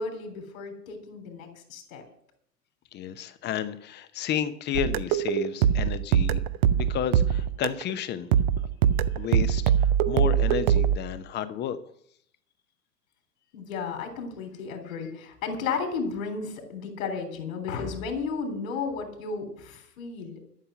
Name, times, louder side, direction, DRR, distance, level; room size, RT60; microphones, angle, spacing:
voice 1, 0.0-2.1 13.5-20.4, left 5 dB, 55° left, 5 dB, 3.6 m, -33 dB
voice 2, 2.9-6.4 6.8-8.3 9.2-11.8, left 9 dB, 20° left, 13 dB, 0.9 m, -32 dB
sound 1, 4.7-7.9 8.3-11.0, right 9 dB, 30° right, 0.5 m, -23 dB
13.0 x 7.0 x 8.1 m, 0.69 s
figure-of-eight pair, 100°, 48 cm